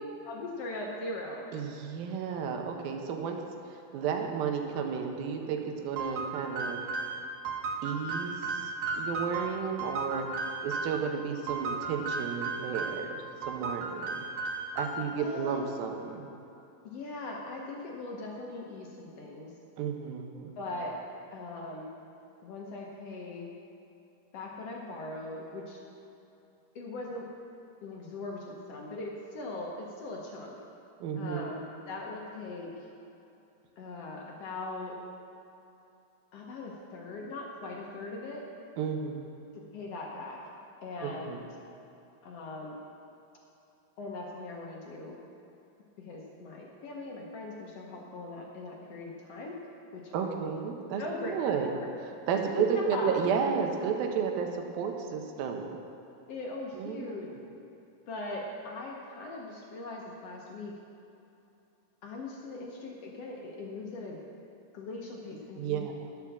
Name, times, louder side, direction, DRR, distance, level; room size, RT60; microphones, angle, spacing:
voice 1, 0.2-1.4 15.1-15.5 16.8-19.5 20.6-20.9 21.3-21.9 22.4-23.5 24.3-25.8 26.7-27.3 27.8-30.6 31.2-31.6 31.9-32.7 33.8-35.0 36.3-38.5 39.5-40.4 40.8-41.5 42.2-42.8 44.0-45.2 46.0-49.6 49.9-50.4 51.0-51.9 52.6-53.1 56.3-57.3 58.1-60.8 62.0-64.2 64.7-65.8, left 2 dB, 65° left, -1 dB, 1.6 m, -40 dB
voice 2, 1.5-3.4 3.7-6.8 7.8-14.2 14.8-16.2 19.8-20.5 31.0-31.5 38.8-39.2 41.0-41.4 50.1-51.7 52.3-55.8 56.7-57.1 65.6-65.9, right 6 dB, 85° right, 3 dB, 2.8 m, -32 dB
sound 1, 6.0-11.0 11.5-13.1 13.4-15.1, right 4 dB, 70° right, 2.7 m, -35 dB
11.0 x 7.1 x 7.2 m, 2.9 s
omnidirectional pair, 4.1 m